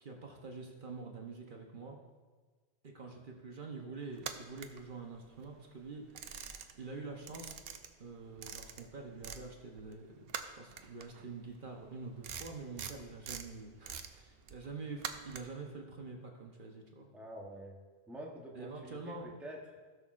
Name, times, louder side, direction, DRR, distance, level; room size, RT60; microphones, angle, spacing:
voice 1, 0.0-2.0 2.8-7.6 8.0-17.1 18.5-19.3, right 4 dB, 50° right, 1 dB, 1.1 m, -46 dB
sound 1, 4.1-5.5 5.8-7.0 7.2-9.5 9.7-15.7, right 7 dB, 65° right, 0.8 m, -45 dB
voice 2, 17.1-17.8 18.1-19.8, right 1 dB, ahead, -1 dB, 0.9 m, -47 dB
16.5 x 6.2 x 2.5 m, 1.4 s
omnidirectional pair, 1.1 m